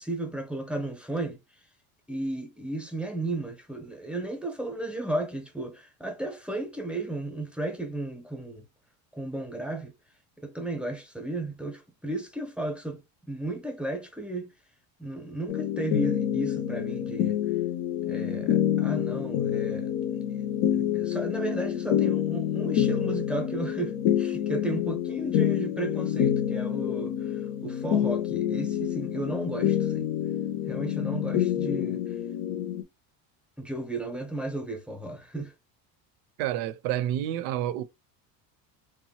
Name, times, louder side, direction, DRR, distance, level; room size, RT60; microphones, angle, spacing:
voice 1, 0.0-1.4 2.1-8.6 9.1-9.9 10.4-13.0 13.3-14.5 15.0-17.4 18.1-19.9 20.3-20.5 20.7-30.1 30.7-32.1 33.6-35.5, right 2 dB, ahead, 0.7 m, -34 dB
sound 1, 15.5-32.8, left 10 dB, 65° left, 0.6 m, -27 dB
voice 2, 36.4-37.8, right 12 dB, 75° right, 0.6 m, -29 dB
3.0 x 2.3 x 2.8 m
supercardioid pair, 95°, 45 cm